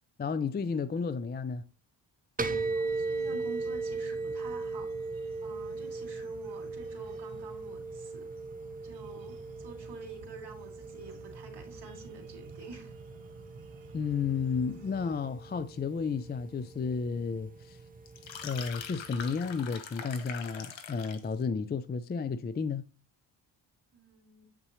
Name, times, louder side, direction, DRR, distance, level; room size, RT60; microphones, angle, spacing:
voice 1, 0.2-1.6 13.9-17.8 18.4-22.9, left 5 dB, 25° left, 0.4 m, -32 dB
sound 1, 2.4-19.7, right 3 dB, 20° right, 0.7 m, -39 dB
voice 2, 2.5-4.9 5.4-8.3 8.8-12.9 23.9-24.5, right 4 dB, 60° right, 2.9 m, -48 dB
sound 2, 2.9-15.2, right 4 dB, 85° right, 1.3 m, -53 dB
sound 3, 18.1-21.3, left 7 dB, 80° left, 1.3 m, -43 dB
8.4 x 5.6 x 3.0 m
cardioid pair, 100°, 44 cm